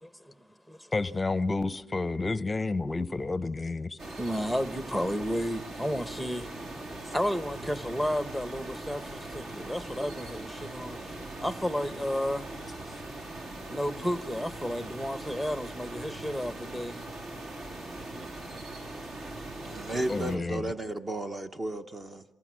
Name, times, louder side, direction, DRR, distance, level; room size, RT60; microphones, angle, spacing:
voice 1, 0.0-0.9 4.2-6.5 7.1-11.1 11.4-12.5 13.7-17.0 18.8-18.9, equal, 5° right, 1.0 m, -32 dB
voice 2, 0.9-4.0 20.1-20.7, left 3 dB, 20° left, 0.7 m, -30 dB
sound 1, 4.0-20.4, right 2 dB, 60° right, 3.7 m, -41 dB
voice 3, 19.6-22.2, right 1 dB, 25° right, 1.0 m, -34 dB
27.5 x 19.5 x 6.3 m
cardioid pair, 90°, 0 cm